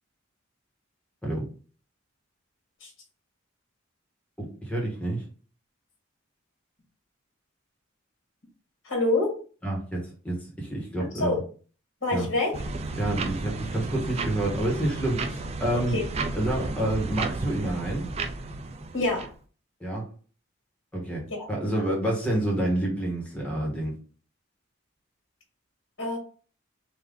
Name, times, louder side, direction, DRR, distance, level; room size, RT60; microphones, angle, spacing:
voice 1, 4.4-5.2 9.6-11.4 12.1-12.3 13.0-16.0 16.3-18.1 19.8-20.1 20.9-23.9, right 1 dB, 5° left, 1.4 m, -28 dB
voice 2, 8.8-9.3 11.1-11.4 12.0-12.5 15.7-16.0 18.9-19.3 21.3-21.5 26.0-26.2, left 2 dB, 65° left, 1.6 m, -26 dB
sound 1, 12.5-19.3, right 3 dB, 30° right, 0.3 m, -33 dB
3.5 x 2.7 x 3.8 m
head